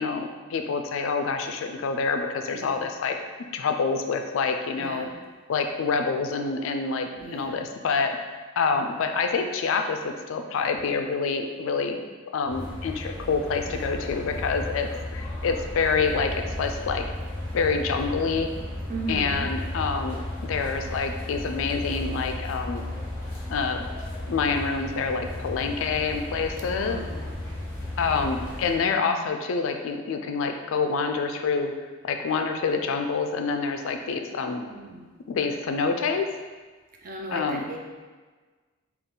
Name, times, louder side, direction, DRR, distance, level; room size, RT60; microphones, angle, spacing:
voice 1, 0.0-3.2 3.5-5.1 5.5-8.2 8.6-12.0 12.3-17.0 17.5-18.5 19.1-20.2 20.5-22.8 23.5-23.9 24.3-27.0 28.0-31.7 32.0-34.6 35.3-36.3 37.3-37.7, left 5 dB, 65° left, 5 dB, 0.3 m, -27 dB
voice 2, 4.8-5.1 7.1-7.7 13.7-14.1 18.9-19.5 26.7-27.3 34.6-35.1 37.0-37.8, right 2 dB, 40° right, 0 dB, 0.4 m, -37 dB
sound 1, 12.5-28.8, left 1 dB, 10° left, 0.8 m, -34 dB
3.8 x 2.3 x 3.7 m, 1.4 s
head